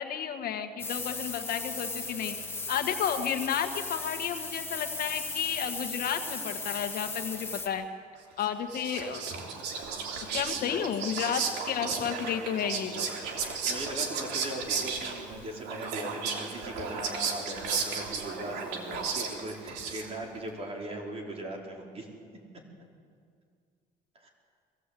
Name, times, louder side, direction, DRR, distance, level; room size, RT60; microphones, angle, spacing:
voice 1, 0.0-2.3 2.7-7.9 8.4-9.2 10.3-13.0, left 8 dB, 60° left, 7 dB, 1.5 m, -32 dB
sound 1, 0.8-7.7, left 3 dB, 15° left, 2.0 m, -37 dB
Whispering, 8.4-20.4, right 5 dB, 85° right, 2.9 m, -34 dB
voice 2, 10.3-10.8 13.7-22.1 24.2-24.3, right 1 dB, 35° right, 0 dB, 4.6 m, -39 dB
23.0 x 16.5 x 8.3 m, 2.1 s
cardioid pair, 110°, 17 cm